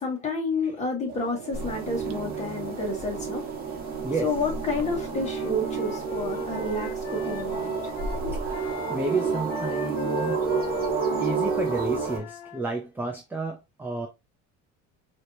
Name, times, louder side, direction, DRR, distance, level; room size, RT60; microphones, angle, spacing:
voice 1, 0.0-3.4 4.2-7.7 8.1-8.4, left 2 dB, 20° left, 1.9 m, -30 dB
sound 1, 1.1-9.4, right 7 dB, 70° right, 0.9 m, -41 dB
sound 2, 1.5-12.2, right 5 dB, 30° right, 1.5 m, -30 dB
voice 2, 4.0-4.3 8.3-10.4 11.2-14.1, right 3 dB, 5° right, 0.6 m, -32 dB
Wind instrument woodwind instrument, 4.6-12.6, left 9 dB, 65° left, 0.6 m, -39 dB
4.9 x 3.1 x 2.8 m
cardioid pair, 150°, 32 cm